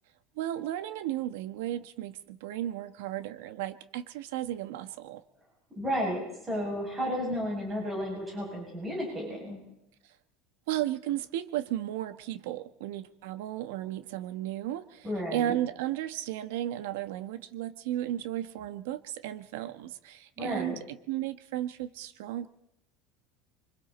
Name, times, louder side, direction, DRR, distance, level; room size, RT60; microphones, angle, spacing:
voice 1, 0.4-5.2 10.7-22.5, right 13 dB, 85° right, 11 dB, 1.1 m, -34 dB
voice 2, 5.8-9.6 15.0-15.5 20.4-20.8, equal, 15° right, -2 dB, 7.3 m, -32 dB
25.5 x 25.0 x 4.2 m, 0.82 s
cardioid pair, 165°, 0 cm